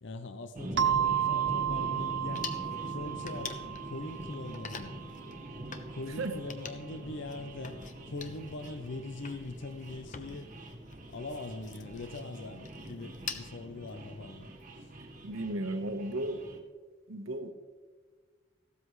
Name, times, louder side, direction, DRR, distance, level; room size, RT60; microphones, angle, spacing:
voice 1, 0.0-2.5 2.8-4.9 5.9-7.8 8.0-10.5 11.1-14.5 14.8-14.9, left 2 dB, 60° left, 9 dB, 0.6 m, -42 dB
sound 1, 0.5-16.6, right 1 dB, 40° right, 1.5 m, -44 dB
sound 2, 0.8-5.2, right 9 dB, 65° right, 0.8 m, -32 dB
sound 3, 2.3-13.5, left 6 dB, 40° left, 0.9 m, -47 dB
voice 2, 15.2-16.4 17.1-17.5, right 1 dB, 80° right, 8 dB, 1.2 m, -34 dB
15.5 x 13.0 x 3.2 m, 1.4 s
head